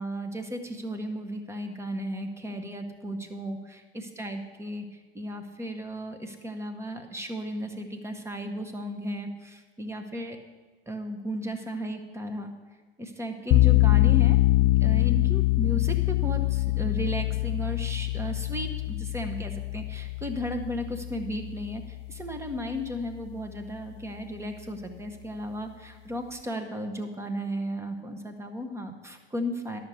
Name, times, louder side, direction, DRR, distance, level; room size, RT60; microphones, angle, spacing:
voice 1, 0.0-3.7 4.2-10.4 10.9-12.5 13.0-14.4 14.8-29.8, equal, 10° right, 6 dB, 1.3 m, -35 dB
sound 1, 13.5-22.4, left 20 dB, 40° left, 0.4 m, -24 dB
12.0 x 6.5 x 7.0 m, 1.3 s
figure-of-eight pair, 85°, 32 cm